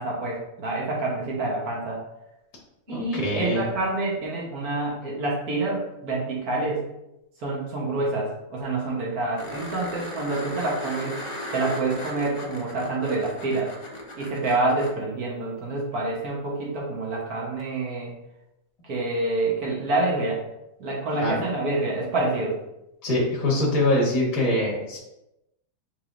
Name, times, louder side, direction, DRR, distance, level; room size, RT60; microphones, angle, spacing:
voice 1, 0.0-2.0 2.9-6.8 7.4-11.2 11.5-13.7 14.1-18.1 18.9-20.4 20.8-22.6, right 2 dB, 60° right, -3 dB, 1.6 m, -27 dB
voice 2, 2.9-3.6 21.2-21.4 23.0-25.0, left 1 dB, 25° left, -3 dB, 1.0 m, -23 dB
sound 1, 9.4-14.9 17.6-17.7, left 1 dB, 40° left, 0.4 m, -37 dB
5.9 x 3.4 x 2.6 m, 0.89 s
omnidirectional pair, 1.8 m